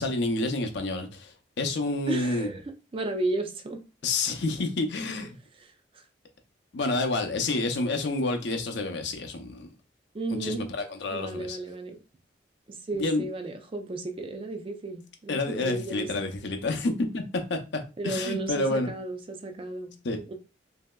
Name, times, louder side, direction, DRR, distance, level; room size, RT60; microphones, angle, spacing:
voice 1, 0.0-2.5 4.0-5.4 6.7-9.7 10.3-11.6 12.9-13.2 15.3-17.2 17.5-18.9 20.0-20.2, left 2 dB, 65° left, 0.5 m, -29 dB
voice 2, 2.1-3.8 5.6-6.0 10.1-10.6 11.1-12.0 12.7-16.3 18.0-19.9 20.3-20.4, right 2 dB, 30° right, 0.3 m, -34 dB
3.0 x 2.7 x 2.2 m
head